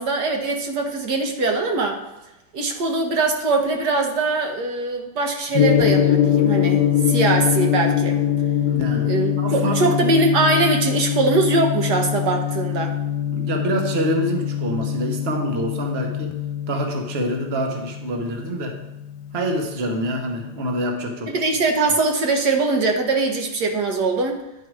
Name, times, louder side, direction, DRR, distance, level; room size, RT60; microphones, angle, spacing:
voice 1, 0.0-2.0 2.5-8.2 9.0-13.0 21.3-24.4, right 3 dB, 70° right, 3 dB, 1.5 m, -22 dB
Gong, 5.5-19.7, left 10 dB, 70° left, 1.2 m, -23 dB
voice 2, 8.7-9.1 9.4-9.9 13.3-16.3 16.7-18.8 19.3-21.3, right 1 dB, 40° right, 3 dB, 1.2 m, -26 dB
10.0 x 4.8 x 4.7 m, 0.97 s
omnidirectional pair, 1.9 m